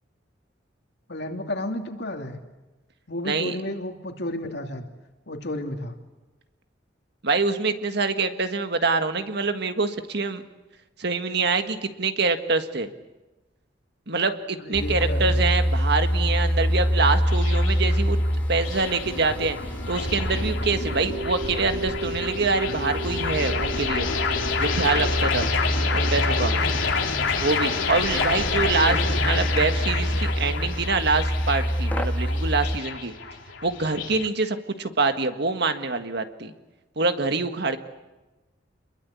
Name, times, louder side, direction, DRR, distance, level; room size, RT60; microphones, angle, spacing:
voice 1, 1.1-2.4 3.1-4.9 5.3-5.9 14.6-15.5 28.2-29.5, left 1 dB, 60° left, 4 dB, 2.8 m, -32 dB
voice 2, 3.2-3.6 7.2-10.4 11.0-12.9 14.1-18.2 18.5-19.6 19.9-24.1 24.6-25.5 25.9-26.5 27.4-29.0 29.2-33.1 33.6-36.5 37.0-37.8, right 4 dB, 60° right, 8 dB, 1.7 m, -25 dB
sound 1, 14.7-32.8, equal, 10° left, 1.3 m, -26 dB
sound 2, 15.6-34.3, left 5 dB, 90° left, 3.2 m, -29 dB
sound 3, 20.5-25.4, right 2 dB, 35° right, 0.9 m, -35 dB
27.5 x 22.0 x 8.5 m, 1.1 s
head